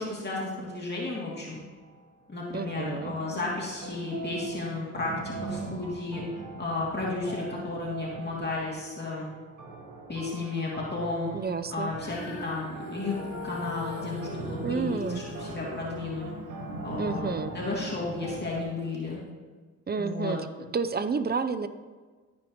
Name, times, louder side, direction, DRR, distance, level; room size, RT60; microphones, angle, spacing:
voice 1, 0.0-1.6 2.3-5.1 5.4-6.2 6.6-9.3 10.1-11.3 11.7-16.3 16.8-19.2 20.0-20.4, left 3 dB, 35° left, -5 dB, 2.7 m, -33 dB
sound 1, 1.5-2.0 2.7-18.6, right 3 dB, 85° right, 1.4 m, -40 dB
voice 2, 2.5-3.2 11.3-11.9 14.6-15.2 17.0-17.6 19.9-20.4 20.7-21.7, right 5 dB, 30° right, 11 dB, 0.6 m, -30 dB
Female singing, 12.0-18.3 19.0-19.1, left 4 dB, 70° left, 2.0 m, -43 dB
14.5 x 5.2 x 3.1 m, 1.4 s
cardioid pair, 60°, 30 cm